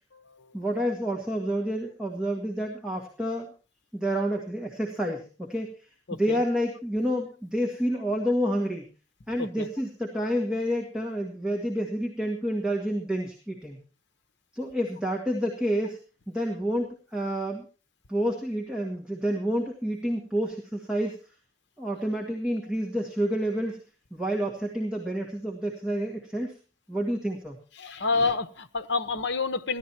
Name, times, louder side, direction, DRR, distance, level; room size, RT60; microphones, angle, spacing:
voice 1, 0.5-3.5 3.9-8.9 9.3-13.8 14.5-16.0 16.3-17.7 18.1-21.2 21.8-23.8 24.1-26.6 26.9-27.6, equal, 5° right, 2.0 m, -29 dB
voice 2, 27.8-29.8, left 4 dB, 60° left, 1.1 m, -28 dB
15.5 x 12.5 x 4.4 m
head